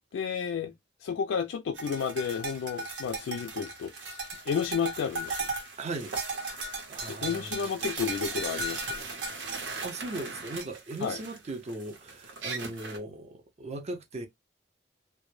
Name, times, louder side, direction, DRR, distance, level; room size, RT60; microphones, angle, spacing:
voice 1, 0.1-0.7 1.0-3.9 4.5-5.5 7.1-9.0 11.0-11.2, left 6 dB, 85° left, 0.3 m, -31 dB
sound 1, 1.8-13.0, right 3 dB, 75° right, 0.8 m, -37 dB
voice 2, 5.8-6.1 6.9-7.7 9.8-14.3, right 2 dB, 40° right, 0.5 m, -38 dB
2.1 x 2.0 x 3.0 m
head